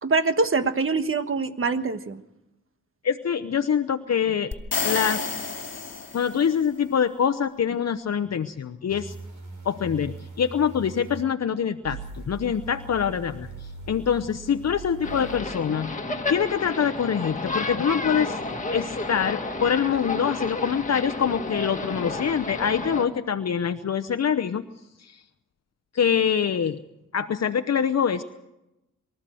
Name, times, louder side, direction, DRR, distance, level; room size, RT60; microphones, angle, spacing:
voice 1, 0.0-2.2, right 4 dB, 45° right, 10 dB, 1.4 m, -24 dB
voice 2, 3.0-4.5 4.8-5.3 5.6-5.7 6.1-9.1 9.6-12.0 12.3-13.5 13.9-15.9 16.3-18.4 18.7-24.7 25.0-25.2 25.9-26.8 27.1-28.2, left 7 dB, 55° left, 9 dB, 0.8 m, -25 dB
sound 1, 4.5-6.6, left 4 dB, 40° left, 2.4 m, -30 dB
sound 2, 8.9-11.2 11.8-15.4, right 3 dB, 80° right, 5.0 m, -40 dB
sound 3, 15.0-23.0, left 3 dB, 25° left, 2.0 m, -31 dB
24.0 x 14.0 x 7.7 m, 0.91 s
wide cardioid pair, 110°, 30 cm